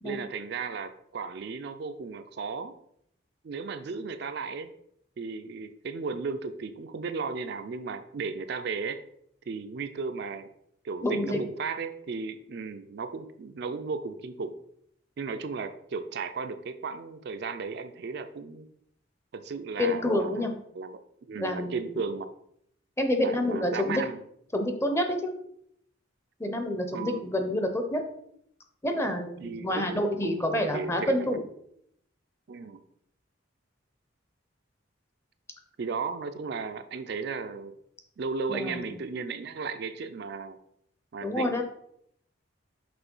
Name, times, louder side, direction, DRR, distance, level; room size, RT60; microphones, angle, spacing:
voice 1, 0.0-2.7 3.4-4.7 5.2-9.0 9.5-10.5 10.8-14.5 15.2-18.7 19.3-20.4 20.7-21.0 21.3-22.3 23.2-24.2 26.9-27.3 29.4-31.4 32.5-32.8 35.8-37.7 38.2-40.6 41.1-41.6, right 4 dB, 55° right, 9 dB, 0.4 m, -35 dB
voice 2, 11.0-11.4 19.8-20.5 21.4-21.9 23.0-24.0 24.5-25.3 26.4-28.0 28.8-31.4 38.5-38.9 41.2-41.6, left 1 dB, 15° left, 5 dB, 0.6 m, -28 dB
6.0 x 3.2 x 5.4 m, 0.72 s
head